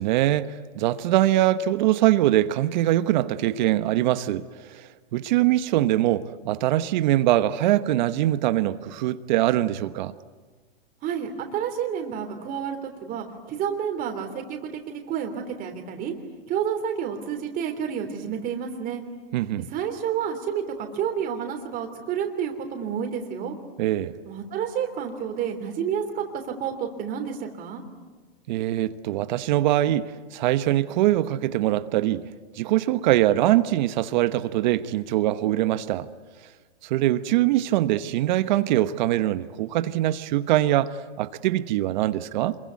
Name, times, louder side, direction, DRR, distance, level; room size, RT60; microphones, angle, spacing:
voice 1, 0.0-4.4 4.7-10.1 19.3-19.7 23.8-24.1 28.5-32.2 32.6-36.1 36.8-42.6, right 14 dB, 50° right, 1.1 m, -23 dB
voice 2, 11.0-16.1 16.5-19.0 19.7-23.6 24.2-27.8, right 8 dB, 25° right, 3.3 m, -30 dB
27.0 x 23.0 x 9.6 m
hypercardioid pair, 135°, 30 cm